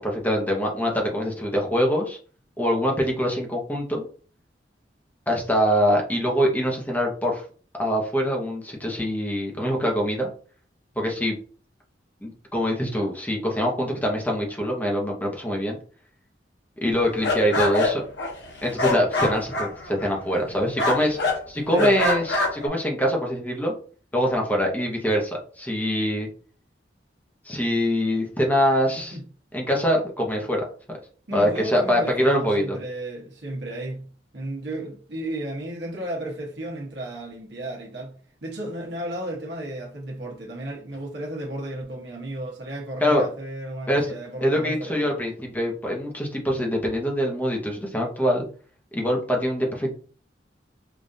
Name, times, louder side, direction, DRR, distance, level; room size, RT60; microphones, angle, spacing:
voice 1, 0.0-2.2 2.6-4.1 5.3-7.4 7.8-10.3 11.0-11.4 12.2-15.8 16.8-18.0 18.6-21.2 21.5-23.7 24.1-26.3 27.5-29.2 29.5-30.6 31.3-32.8 43.0-43.2 43.9-44.1 44.4-48.5 48.9-49.9, equal, 10° left, 0.8 m, -24 dB
sound 1, 16.9-20.5 20.8-21.4 21.7-22.7, left 2 dB, 75° left, 1.0 m, -25 dB
voice 2, 31.3-34.1 34.3-38.1 38.4-45.1, right 1 dB, 70° right, 1.1 m, -33 dB
5.0 x 2.5 x 2.7 m
head